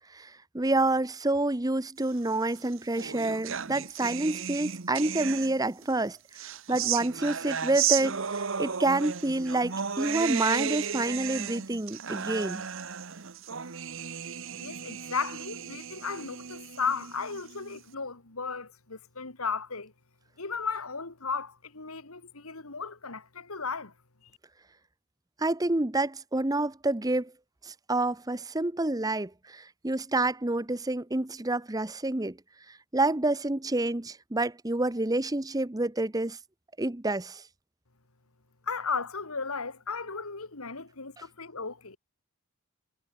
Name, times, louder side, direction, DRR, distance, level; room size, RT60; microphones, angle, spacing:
voice 1, 0.0-12.6 25.4-27.3 27.6-32.4 32.9-36.4 36.8-37.4, right 2 dB, 15° right, 0.8 m, -28 dB
sound 1, 2.4-5.8 6.3-17.8, right 8 dB, 60° right, 1.0 m, -34 dB
voice 2, 14.6-19.9 20.4-23.9 38.7-42.0, left 5 dB, 80° left, 2.6 m, -35 dB
head